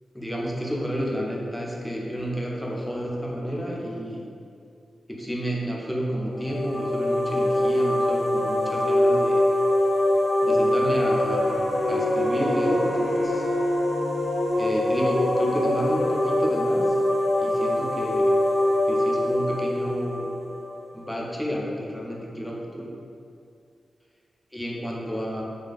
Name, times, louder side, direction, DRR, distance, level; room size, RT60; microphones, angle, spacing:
voice 1, 0.1-4.2 5.1-9.4 10.4-11.5 11.8-13.5 14.5-17.0 17.4-18.4 18.9-20.3 20.9-22.9 24.5-25.4, equal, 5° left, -3 dB, 0.3 m, -30 dB
sound 1, 6.3-21.0, left 1 dB, 85° left, 0.3 m, -23 dB
Bowed string instrument, 11.3-15.7, right 1 dB, 85° right, 0.5 m, -39 dB
2.3 x 2.3 x 2.4 m, 2.4 s
wide cardioid pair, 125°, 0 cm